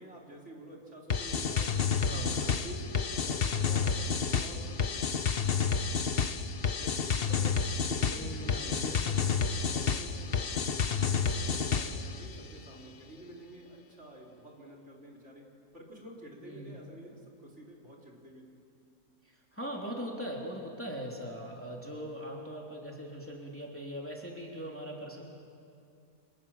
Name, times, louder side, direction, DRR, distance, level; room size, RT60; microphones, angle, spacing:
voice 1, 0.0-5.2 6.4-7.5 7.9-10.8 11.1-15.5 15.7-18.5, equal, 45° right, 0 dB, 4.1 m, -49 dB
sound 1, 1.1-12.2, left 6 dB, 45° left, 1.1 m, -30 dB
voice 2, 2.0-2.3 8.1-9.2 16.4-16.7 19.5-25.2, equal, 10° left, -1 dB, 3.3 m, -40 dB
29.0 x 26.0 x 7.4 m, 2.5 s
omnidirectional pair, 1.6 m